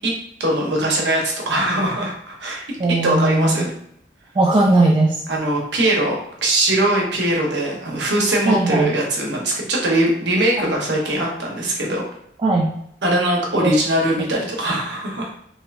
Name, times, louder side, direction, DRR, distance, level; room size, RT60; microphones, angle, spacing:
voice 1, 0.4-2.6 2.9-3.7 5.3-6.2 6.4-12.0 13.0-15.3, right 1 dB, 80° right, -1 dB, 0.9 m, -21 dB
voice 2, 2.8-3.6 4.4-5.2 8.5-8.9 10.7-10.8 12.4-12.7 13.5-13.7, right 2 dB, 25° right, -1 dB, 0.3 m, -18 dB
3.3 x 3.0 x 2.4 m, 0.72 s
head